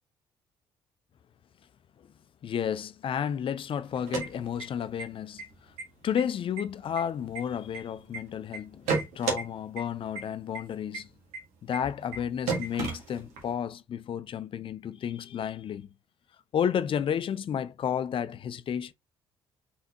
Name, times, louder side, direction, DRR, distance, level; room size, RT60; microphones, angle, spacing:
voice 1, 2.4-5.4 6.0-11.1 11.6-15.9 16.5-18.9, left 8 dB, 50° left, 0.5 m, -32 dB
sound 1, 3.9-5.0 5.4-5.5 5.8-6.2 6.6-8.2 8.5-9.4 9.8-9.9 10.2-10.3 10.5-10.6 10.9-11.0 11.3-11.4 11.7-11.8 12.1-12.2 12.5-13.5, right 5 dB, 75° right, 1.5 m, -32 dB
4.0 x 3.9 x 2.8 m
hypercardioid pair, 50°, 12 cm